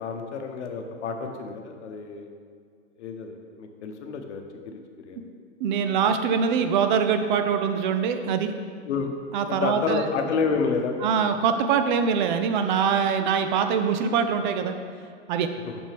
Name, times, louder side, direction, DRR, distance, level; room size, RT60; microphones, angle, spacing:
voice 1, 0.0-2.3 3.0-5.2 8.9-9.1 9.5-11.1, left 5 dB, 65° left, 5 dB, 0.9 m, -29 dB
voice 2, 5.6-8.5 9.3-10.1 11.0-14.8 15.3-15.5, right 6 dB, 40° right, 8 dB, 0.5 m, -23 dB
6.2 x 6.1 x 3.4 m, 2.1 s
hypercardioid pair, 120°, 37 cm